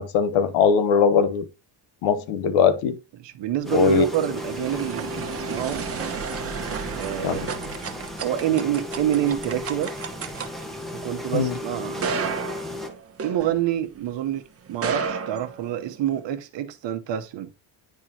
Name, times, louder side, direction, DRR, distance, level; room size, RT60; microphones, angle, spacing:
voice 1, 0.0-1.5 2.0-3.0 3.7-4.0 7.2-7.5 11.3-11.5, left 6 dB, 85° left, 1.0 m, -20 dB
voice 2, 3.2-5.9 7.0-7.5 8.2-9.9 11.0-12.5 13.2-14.4 14.7-17.5, right 11 dB, 60° right, 1.0 m, -27 dB
sound 1, 3.6-12.9, left 2 dB, ahead, 1.1 m, -35 dB
sound 2, 3.7-14.1 14.7-16.2, right 5 dB, 30° right, 1.0 m, -33 dB
10.5 x 3.7 x 2.8 m
cardioid pair, 95°, 48 cm